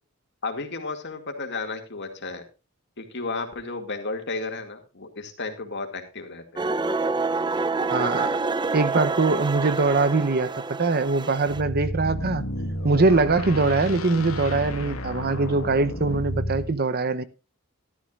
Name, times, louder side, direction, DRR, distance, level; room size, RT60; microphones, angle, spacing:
voice 1, 0.4-2.4 3.0-6.7 7.8-8.1, left 3 dB, 55° left, 2.4 m, -33 dB
sound 1, 6.6-11.6, right 3 dB, 20° right, 0.6 m, -27 dB
voice 2, 7.9-8.4 8.7-10.5 10.8-12.4 12.8-17.2, right 3 dB, 50° right, 0.8 m, -22 dB
sound 2, 11.5-16.7, equal, 80° left, 1.8 m, -31 dB
14.5 x 12.5 x 2.5 m
head